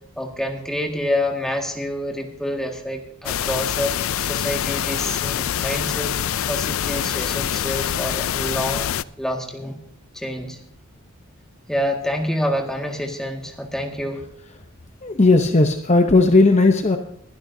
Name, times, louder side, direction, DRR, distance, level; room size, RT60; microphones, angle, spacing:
voice 1, 0.2-3.9 4.2-6.2 6.5-8.9 9.2-9.8 10.1-10.6 11.7-14.2, left 1 dB, ahead, 1 dB, 1.9 m, -27 dB
sound 1, 3.3-9.0, left 10 dB, 65° left, 0.4 m, -25 dB
voice 2, 15.0-17.0, left 2 dB, 30° left, 5 dB, 0.8 m, -15 dB
22.5 x 11.5 x 2.8 m, 0.74 s
head